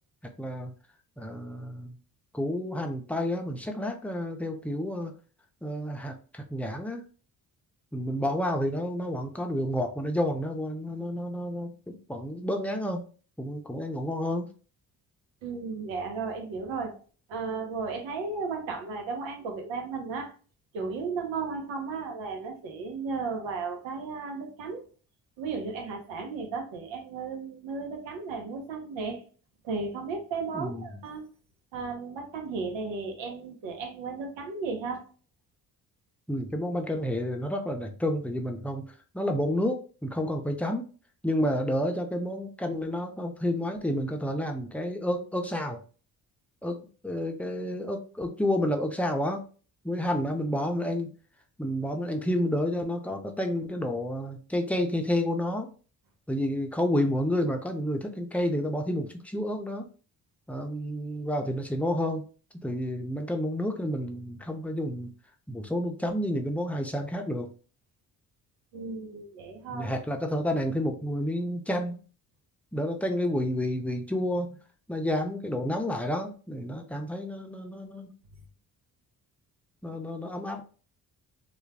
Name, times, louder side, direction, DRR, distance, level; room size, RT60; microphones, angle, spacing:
voice 1, 0.4-0.7 1.2-2.0 2.3-5.1 5.6-7.0 7.9-13.1 13.4-14.5 30.5-30.9 36.3-38.9 39.1-40.9 41.2-45.8 46.6-46.8 47.0-49.4 49.8-51.1 51.6-55.7 56.3-59.9 60.5-62.2 62.5-65.1 65.5-67.5 69.7-72.0 72.7-74.6 74.9-78.1 79.8-80.6, left 1 dB, 5° left, 3 dB, 0.5 m, -30 dB
voice 2, 15.4-17.0 17.3-20.3 20.7-24.8 25.4-29.2 29.6-31.3 31.7-35.1 68.7-69.9 79.9-80.0, right 4 dB, 70° right, 3 dB, 1.0 m, -34 dB
2.4 x 2.2 x 3.3 m, 0.38 s
hypercardioid pair, 45°, 48 cm